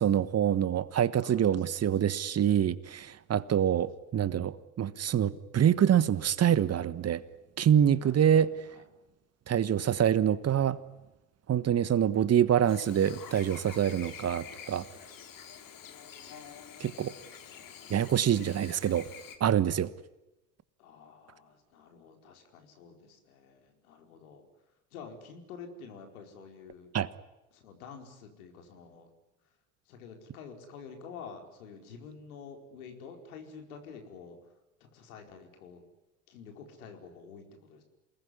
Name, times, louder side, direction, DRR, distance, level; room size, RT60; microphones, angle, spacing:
voice 1, 0.0-7.2 7.6-8.5 9.5-10.8 11.5-14.8 16.8-17.1 17.9-19.1 19.4-19.9 26.9-27.1, right 9 dB, 35° right, 16 dB, 1.3 m, -26 dB
voice 2, 1.2-1.6 8.0-8.8 17.5-17.7 18.2-18.5 20.8-24.5 24.9-26.9 27.5-29.1 29.9-34.4 34.8-35.8 36.3-37.8, left 5 dB, 75° left, 4 dB, 4.9 m, -49 dB
Chirp tweet / Buzz, 12.7-19.4, left 8 dB, 50° left, 3.8 m, -47 dB
28.0 x 20.0 x 10.0 m, 0.99 s
hypercardioid pair, 65°, 43 cm